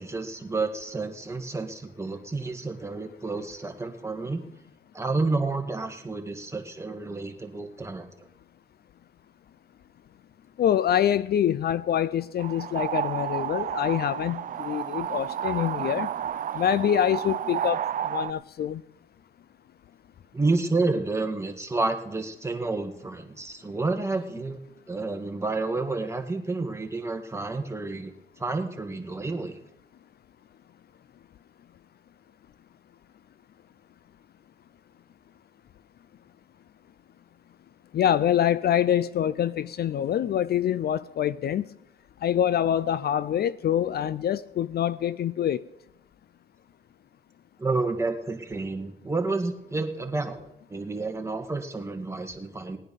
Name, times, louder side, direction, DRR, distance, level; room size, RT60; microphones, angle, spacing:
voice 1, 0.0-4.4 4.9-8.1 20.3-24.6 24.9-28.1 28.4-29.5 47.6-52.8, right 3 dB, 15° right, 1.9 m, -30 dB
voice 2, 10.6-16.1 16.5-18.8 37.9-41.7 42.2-45.6, left 10 dB, 55° left, 0.5 m, -25 dB
sound 1, 12.4-18.3, right 10 dB, 45° right, 0.4 m, -31 dB
19.0 x 9.7 x 5.5 m
cardioid pair, 90°, 20 cm